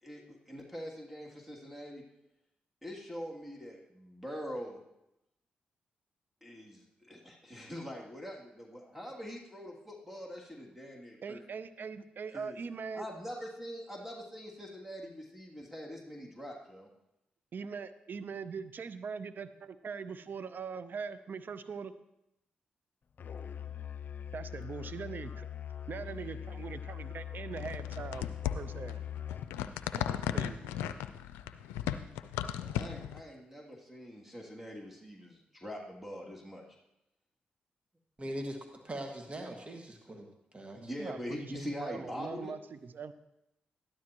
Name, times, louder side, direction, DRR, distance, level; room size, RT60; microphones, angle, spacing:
voice 1, 0.0-2.0 2.8-4.8 6.4-11.4 12.3-12.6 12.9-16.9 32.6-36.6 40.7-42.5, equal, 5° right, -2 dB, 2.8 m, -43 dB
voice 2, 11.2-13.1 17.5-21.9 24.3-25.5 25.9-29.0 30.3-30.9 41.0-43.1, right 5 dB, 60° right, 13 dB, 0.7 m, -42 dB
Musical instrument, 23.2-29.6, left 9 dB, 55° left, 0.7 m, -42 dB
sound 1, 27.5-33.2, left 10 dB, 90° left, 0.4 m, -36 dB
voice 3, 38.2-40.3 40.5-40.9, right 1 dB, 35° right, 2 dB, 1.9 m, -41 dB
13.0 x 11.5 x 3.0 m, 0.88 s
hypercardioid pair, 40°, 4 cm